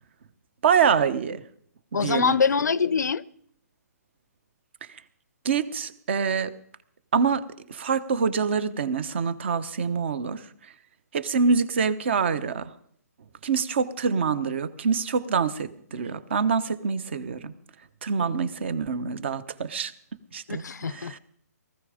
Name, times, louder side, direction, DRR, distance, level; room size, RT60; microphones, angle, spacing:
voice 1, 0.6-1.4 1.9-2.4 5.4-6.5 7.1-10.4 11.1-12.7 13.4-17.5 18.0-19.9 20.3-20.6 20.9-21.2, right 6 dB, 40° right, 1.1 m, -25 dB
voice 2, 1.9-3.2 20.5-21.2, left 5 dB, 90° left, 0.7 m, -24 dB
19.0 x 14.5 x 5.1 m
hypercardioid pair, 170°, 9 cm